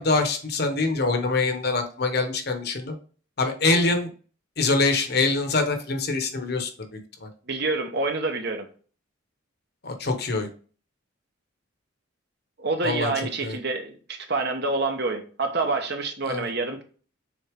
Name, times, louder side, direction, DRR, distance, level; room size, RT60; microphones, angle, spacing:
voice 1, 0.0-2.9 3.4-4.1 4.6-6.7 7.2-7.3 9.8-10.5 12.8-13.1 13.4-13.6 16.2-16.5, left 3 dB, 50° left, 1.1 m, -24 dB
voice 2, 7.5-8.7 12.6-16.8, right 3 dB, 55° right, 1.1 m, -27 dB
6.3 x 4.1 x 3.6 m
head